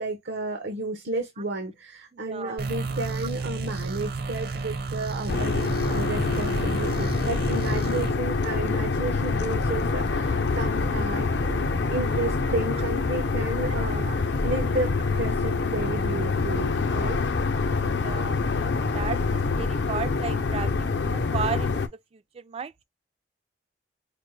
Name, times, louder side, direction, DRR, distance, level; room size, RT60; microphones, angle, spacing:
voice 1, 0.0-17.2, right 2 dB, 90° right, 0.9 m, -32 dB
voice 2, 2.1-2.6 5.3-5.4 13.6-14.2 17.9-21.7 22.3-22.8, right 6 dB, 35° right, 0.3 m, -35 dB
sound 1, 2.6-8.1, right 3 dB, 60° right, 0.7 m, -32 dB
sound 2, 5.3-21.9, left 4 dB, 70° left, 0.6 m, -26 dB
5.1 x 2.1 x 3.1 m
head